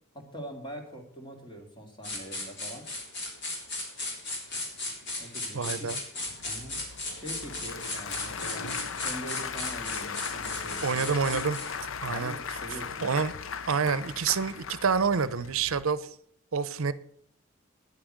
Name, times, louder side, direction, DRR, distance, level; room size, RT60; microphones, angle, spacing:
voice 1, 0.1-2.9 5.2-5.9 6.4-6.8 7.1-11.3 12.1-13.3, equal, 20° left, 2.3 m, -43 dB
sound 1, 2.0-11.8, left 2 dB, 55° left, 3.6 m, -36 dB
voice 2, 5.5-6.0 10.8-11.6 12.0-12.4 13.0-13.3 13.7-16.0 16.5-16.9, right 5 dB, 80° right, 0.6 m, -27 dB
Applause / Crowd, 6.3-15.8, left 6 dB, 70° left, 0.6 m, -38 dB
9.7 x 8.8 x 7.5 m
head